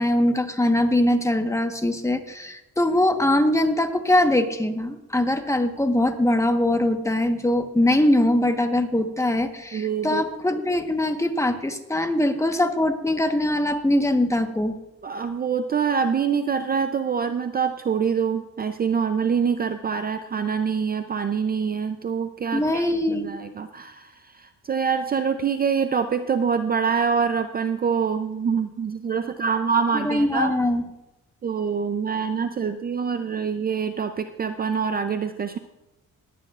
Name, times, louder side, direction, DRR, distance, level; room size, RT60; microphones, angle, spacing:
voice 1, 0.0-14.7 22.5-23.3 29.9-30.8, left 1 dB, 10° left, 6 dB, 1.1 m, -22 dB
voice 2, 9.7-10.2 15.0-30.5 31.4-35.6, right 6 dB, 30° right, 9 dB, 0.5 m, -25 dB
20.5 x 9.3 x 2.4 m, 0.95 s
cardioid pair, 90°, 30 cm